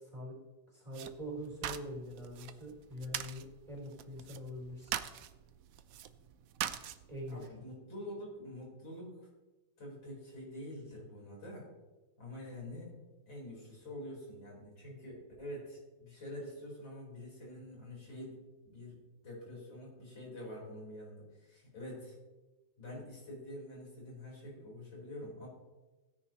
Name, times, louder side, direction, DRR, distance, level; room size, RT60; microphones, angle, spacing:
voice 1, 0.7-4.9 7.1-7.4, equal, 15° right, -6 dB, 3.8 m, -44 dB
sound 1, 0.9-7.5, right 10 dB, 80° right, 0.7 m, -43 dB
voice 2, 7.3-9.3 9.8-11.7 12.2-12.9 13.3-18.4 18.6-22.2 22.8-25.5, left 1 dB, 70° left, -4 dB, 5.0 m, -46 dB
16.5 x 9.9 x 3.0 m, 1.2 s
omnidirectional pair, 2.2 m